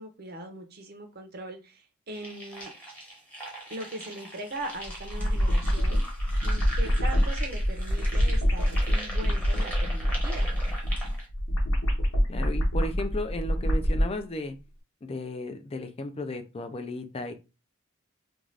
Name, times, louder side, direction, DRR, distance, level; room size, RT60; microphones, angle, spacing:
voice 1, 0.0-2.7 3.7-10.5, right 1 dB, 50° right, 0.7 m, -40 dB
sound 1, 2.1-11.2, right 1 dB, 5° left, 0.9 m, -41 dB
sound 2, 4.8-14.1, equal, 75° left, 0.8 m, -26 dB
voice 2, 12.3-14.5 15.0-17.3, left 1 dB, 30° left, 0.4 m, -34 dB
2.5 x 2.4 x 3.2 m
head